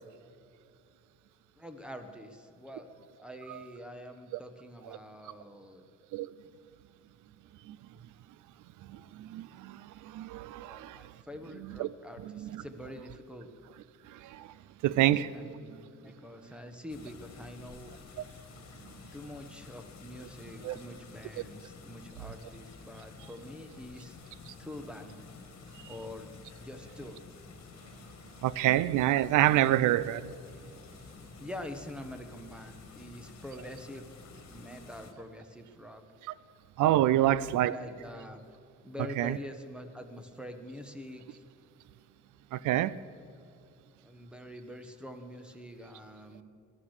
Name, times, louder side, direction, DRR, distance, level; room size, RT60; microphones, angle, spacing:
voice 1, 1.6-2.9 3.2-5.8 6.4-6.5 7.9-8.0 10.6-13.5 15.0-17.9 19.1-24.2 24.6-25.3 25.9-26.3 26.6-27.2 31.4-34.0 34.5-36.0 37.1-38.4 38.8-41.4 44.0-46.4, left 1 dB, 5° right, 1.5 m, -45 dB
voice 2, 8.9-11.0 11.8-11.9 12.2-12.6 14.1-14.5 14.8-15.3 20.6-20.8 28.4-30.3 36.8-37.8 39.2-39.4 42.5-42.9, right 13 dB, 85° right, 0.6 m, -27 dB
sound 1, 16.9-35.1, left 5 dB, 55° left, 1.9 m, -51 dB
18.5 x 12.0 x 6.6 m
cardioid pair, 90°, 30 cm